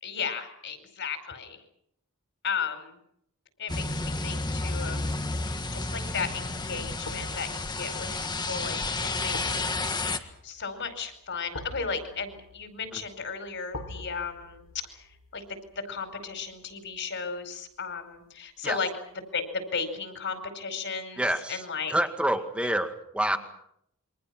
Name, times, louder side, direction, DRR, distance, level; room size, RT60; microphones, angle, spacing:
voice 1, 0.0-1.6 2.4-2.9 3.6-5.2 5.7-14.6 15.3-15.4 15.9-18.9 19.3-21.2 21.5-21.9 23.3-23.4, left 5 dB, 55° left, 8 dB, 5.0 m, -35 dB
sound 1, 3.7-10.2, left 3 dB, 20° left, 1.7 m, -31 dB
sound 2, 5.3-5.6 7.0-18.0 18.4-18.5, left 2 dB, 70° left, 4.3 m, -46 dB
voice 2, 21.2-21.6 21.9-23.4, right 1 dB, 5° right, 7 dB, 2.0 m, -27 dB
28.5 x 24.0 x 6.1 m, 0.72 s
head